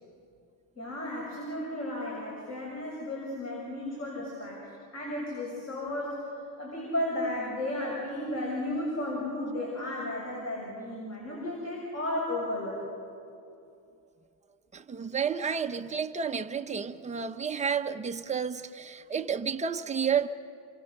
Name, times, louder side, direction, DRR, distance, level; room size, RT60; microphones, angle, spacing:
voice 1, 0.8-6.3 6.6-12.8, left 1 dB, 30° left, 7.0 m, -34 dB
voice 2, 14.7-20.3, right 6 dB, 15° right, 0.8 m, -31 dB
28.0 x 24.0 x 6.7 m
cardioid pair, 130°, 49 cm